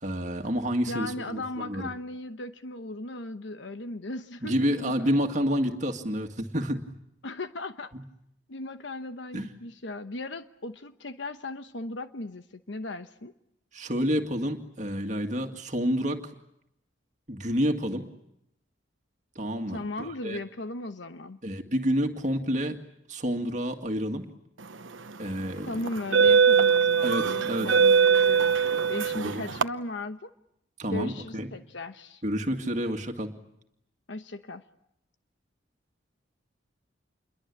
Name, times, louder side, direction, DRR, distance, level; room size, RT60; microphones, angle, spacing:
voice 1, 0.0-1.9 4.4-6.8 9.3-9.5 13.7-16.2 17.3-18.0 19.4-20.4 21.4-22.8 23.1-24.3 25.2-25.7 27.0-27.7 29.1-29.4 30.8-31.5 32.2-33.3, equal, 40° right, 3 dB, 2.1 m, -29 dB
voice 2, 0.9-5.1 7.2-7.9 8.5-13.3 19.7-21.4 25.7-28.6 28.9-30.3 30.9-32.2 34.1-34.6, left 2 dB, 70° left, 9 dB, 1.0 m, -37 dB
sound 1, 24.9-25.1 25.8-29.6, right 6 dB, 85° right, 1.0 m, -21 dB
28.5 x 23.0 x 8.5 m, 0.78 s
head